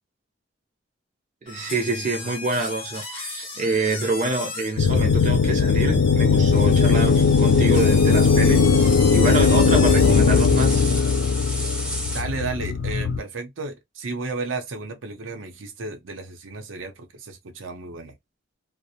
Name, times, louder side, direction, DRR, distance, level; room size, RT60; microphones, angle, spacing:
voice 1, 1.4-10.9, right 2 dB, 40° right, 0.5 m, -27 dB
sound 1, 1.5-10.3, left 3 dB, 30° left, 0.8 m, -35 dB
sound 2, 4.8-13.2, left 5 dB, 70° left, 0.3 m, -18 dB
sound 3, 6.5-12.2, right 1 dB, 5° right, 0.7 m, -34 dB
voice 2, 12.1-18.1, right 3 dB, 90° right, 0.7 m, -33 dB
2.5 x 2.0 x 2.7 m
head